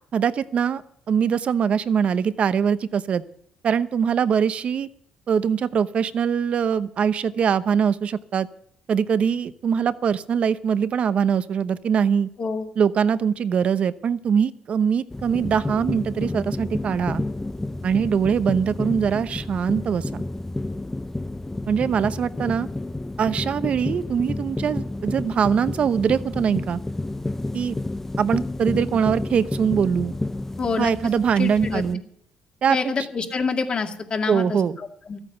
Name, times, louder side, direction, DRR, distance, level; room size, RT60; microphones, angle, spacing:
voice 1, 0.1-3.2 3.6-4.9 5.3-8.5 8.9-12.3 12.8-17.2 17.8-20.2 21.7-22.7 23.2-26.8 27.5-27.8 28.2-30.1 30.8-32.0 32.6-32.8 34.3-34.8, right 7 dB, 55° right, 14 dB, 0.8 m, -22 dB
sound 1, 15.1-31.9, left 2 dB, 15° left, 0.4 m, -30 dB
voice 2, 30.6-30.9 31.4-31.8 32.7-35.2, left 4 dB, 45° left, 4 dB, 2.2 m, -27 dB
13.5 x 9.0 x 8.0 m, 0.67 s
cardioid pair, 85°, 2 cm